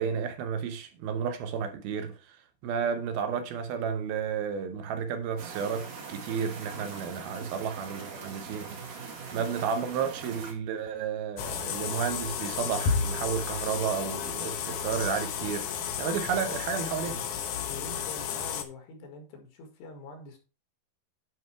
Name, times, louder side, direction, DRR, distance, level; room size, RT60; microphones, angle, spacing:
voice 1, 0.0-2.4 2.6-8.8 9.3-15.7 16.0-17.3, right 7 dB, 75° right, 2.7 m, -32 dB
sound 1, 5.4-10.5, right 5 dB, 55° right, 3.6 m, -42 dB
sound 2, 11.4-18.6, left 7 dB, 75° left, 1.7 m, -32 dB
voice 2, 17.7-20.4, left 3 dB, 90° left, 4.0 m, -45 dB
9.4 x 5.5 x 4.6 m
omnidirectional pair, 4.7 m